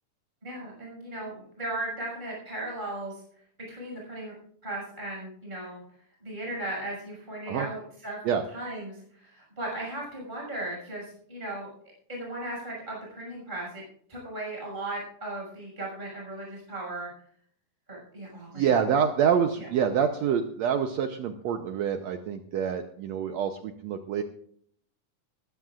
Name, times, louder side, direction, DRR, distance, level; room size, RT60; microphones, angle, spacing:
voice 1, 0.4-3.2 3.7-4.3 4.6-5.8 6.2-11.7 12.1-13.8 14.1-17.1 17.9-18.8 19.6-19.7, right 1 dB, 15° right, -3 dB, 6.4 m, -37 dB
voice 2, 18.5-24.2, right 8 dB, 70° right, 6 dB, 1.8 m, -26 dB
21.0 x 15.0 x 2.5 m, 0.62 s
omnidirectional pair, 3.7 m